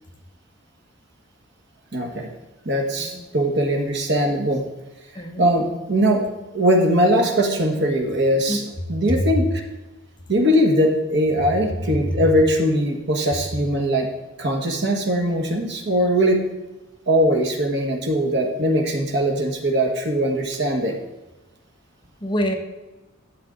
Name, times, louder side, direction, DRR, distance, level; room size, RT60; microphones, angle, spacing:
voice 1, 1.9-2.3 2.6-4.6 5.4-6.2 6.5-8.6 8.9-9.5 10.3-14.1 14.4-16.4 17.1-21.0, equal, 55° right, 3 dB, 1.5 m, -20 dB
voice 2, 5.1-5.5 8.5-8.7 9.1-9.2 12.1-12.2 22.2-22.5, equal, 25° left, 3 dB, 1.0 m, -25 dB
12.5 x 7.8 x 3.9 m, 1.1 s
head